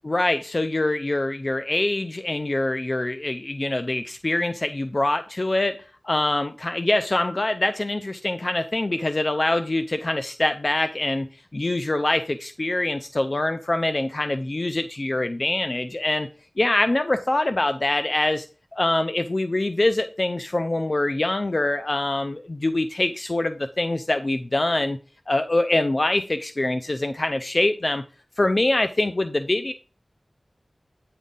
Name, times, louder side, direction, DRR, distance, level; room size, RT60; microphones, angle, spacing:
voice 1, 0.0-5.8 6.0-11.3 11.5-16.3 16.6-18.5 18.7-25.0 25.3-28.0 28.4-29.7, left 2 dB, 45° left, 9 dB, 0.5 m, -24 dB
9.2 x 3.8 x 3.9 m, 0.34 s
wide cardioid pair, 45°, 0 cm